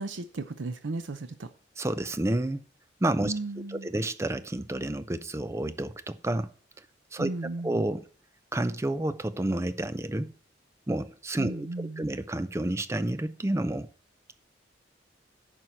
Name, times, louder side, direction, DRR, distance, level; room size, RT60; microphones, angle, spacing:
voice 1, 0.0-1.5 3.2-3.9 7.2-7.9 11.4-12.1, right 2 dB, 90° right, 0.6 m, -35 dB
voice 2, 1.8-2.6 3.0-3.3 3.7-6.5 7.1-7.3 7.6-8.0 8.5-10.3 10.9-13.9, right 1 dB, 15° right, 0.4 m, -30 dB
11.0 x 4.6 x 7.2 m
head